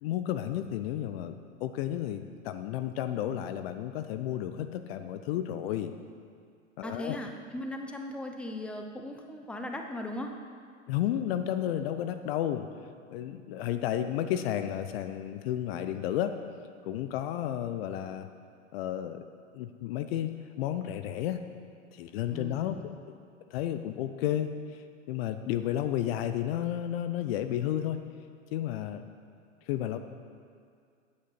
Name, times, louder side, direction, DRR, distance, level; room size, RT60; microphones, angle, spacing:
voice 1, 0.0-5.9 6.8-7.2 10.9-12.7 13.1-16.4 16.8-18.3 18.7-19.3 19.5-20.3 20.6-21.4 21.9-22.8 23.5-28.0 28.5-29.1 29.7-30.0, left 11 dB, 50° left, 9 dB, 0.6 m, -32 dB
voice 2, 6.8-10.3 22.3-23.0, left 1 dB, 5° left, 3 dB, 0.8 m, -38 dB
9.6 x 8.6 x 5.9 m, 2.2 s
figure-of-eight pair, 95°, 38 cm